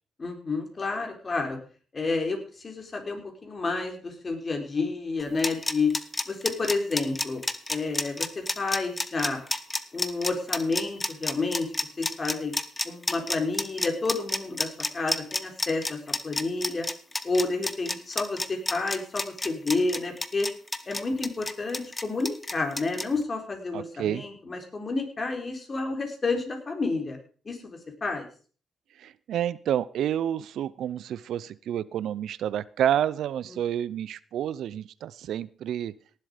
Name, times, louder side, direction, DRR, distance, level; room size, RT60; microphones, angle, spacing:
voice 1, 0.2-1.6 1.9-5.9 6.3-7.4 7.7-9.4 9.9-12.5 12.8-16.9 17.2-20.5 20.9-27.2 27.5-28.3 33.5-33.6, left 3 dB, 35° left, 3 dB, 3.9 m, -30 dB
sound 1, 5.2-23.1, left 2 dB, 20° left, 1.1 m, -30 dB
voice 2, 23.7-24.2 29.0-35.9, right 10 dB, 80° right, 20 dB, 0.5 m, -29 dB
17.5 x 7.6 x 5.0 m, 0.40 s
cardioid pair, 75°, 0 cm